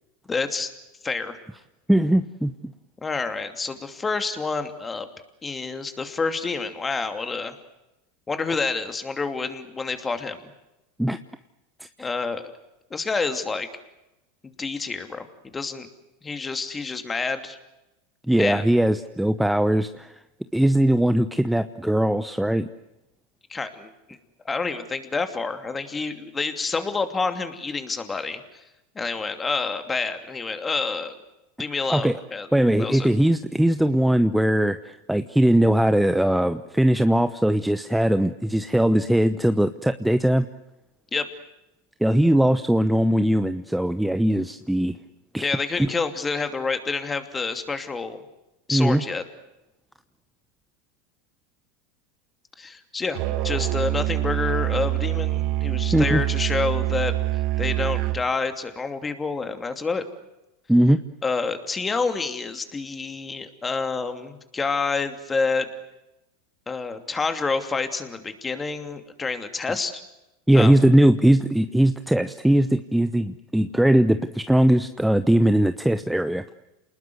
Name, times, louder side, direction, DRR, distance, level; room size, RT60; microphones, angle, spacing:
voice 1, 0.3-0.7 1.0-1.4 3.0-5.1 5.4-7.6 8.3-10.5 12.0-12.4 12.9-13.7 14.4-15.2 15.5-15.9 16.2-17.6 18.4-18.6 23.5-23.9 24.4-28.4 28.9-31.2 31.6-32.5 32.8-33.1 41.1-41.3 45.4-48.2 48.7-49.2 52.6-53.2 53.4-57.1 57.6-60.0 61.2-65.7 66.7-70.0 70.5-70.8, left 4 dB, 20° left, 8 dB, 2.8 m, -28 dB
voice 2, 1.9-2.5 11.0-11.2 11.8-12.1 18.3-20.1 20.5-22.7 31.9-32.1 32.5-40.5 42.0-45.0 45.3-45.5 45.8-45.9 48.7-49.0 55.9-56.2 60.7-61.0 70.5-76.4, right 1 dB, 5° right, 11 dB, 0.9 m, -20 dB
Musical instrument, 53.1-58.3, right 15 dB, 55° right, 1.5 m, -25 dB
28.0 x 20.0 x 8.0 m, 0.94 s
hypercardioid pair, 110°, 0 cm